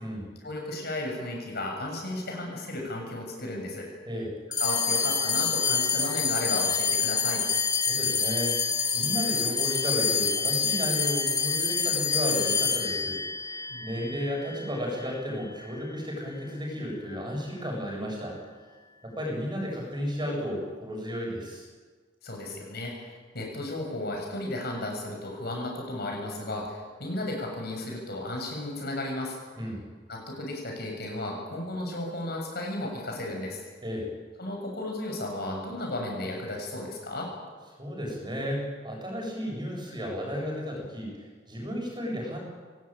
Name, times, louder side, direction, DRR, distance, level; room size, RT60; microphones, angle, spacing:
voice 1, 0.4-3.9 4.6-7.4 13.7-14.1 22.2-29.4 30.1-33.6 34.4-37.3, left 1 dB, 55° left, 0 dB, 7.6 m, -34 dB
sound 1, 4.5-15.2, left 5 dB, 20° left, 2.1 m, -27 dB
voice 2, 7.9-8.6 8.9-18.4 19.0-21.6 29.6-29.8 33.8-34.1 37.8-41.1 41.5-42.4, equal, 25° right, -1 dB, 7.8 m, -33 dB
23.0 x 19.5 x 9.1 m, 1.5 s
head